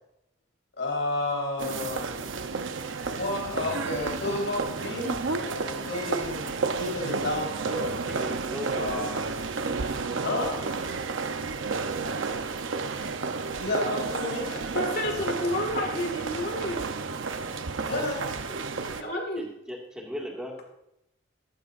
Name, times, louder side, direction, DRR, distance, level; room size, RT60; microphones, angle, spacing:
voice 1, 0.8-2.1 3.1-7.9 8.7-9.1 10.2-10.5 13.6-14.5 17.9-18.2, left 2 dB, 75° left, -1 dB, 4.2 m, -31 dB
sound 1, 1.6-19.0, right 4 dB, 85° right, 0.8 m, -31 dB
voice 2, 8.1-9.1 18.5-18.6 19.4-20.6, equal, 5° right, -2 dB, 2.0 m, -37 dB
voice 3, 14.5-16.8 17.6-17.8 19.0-19.5, left 1 dB, 50° left, 3 dB, 2.0 m, -30 dB
14.0 x 13.0 x 2.6 m, 0.82 s
head